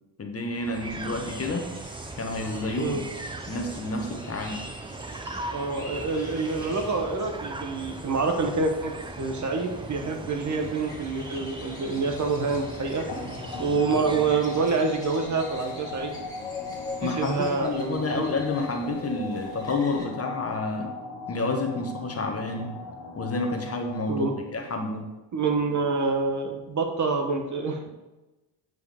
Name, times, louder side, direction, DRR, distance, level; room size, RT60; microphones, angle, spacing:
voice 1, 0.2-1.7 2.2-3.0 3.5-4.6 17.0-21.0 21.3-22.7 23.2-24.2 24.5-25.1, left 2 dB, 35° left, 3 dB, 1.2 m, -29 dB
sound 1, 0.5-14.8, right 2 dB, 10° right, 0.5 m, -39 dB
sound 2, 0.8-20.1, left 2 dB, 10° left, 2.1 m, -44 dB
voice 2, 5.5-13.1 13.6-16.2 17.0-18.2 24.1-24.3 25.3-27.9, right 4 dB, 40° right, 3 dB, 1.1 m, -27 dB
sound 3, 13.1-24.4, left 4 dB, 70° left, 1.5 m, -39 dB
9.3 x 4.8 x 3.6 m, 1.1 s
cardioid pair, 85°, 43 cm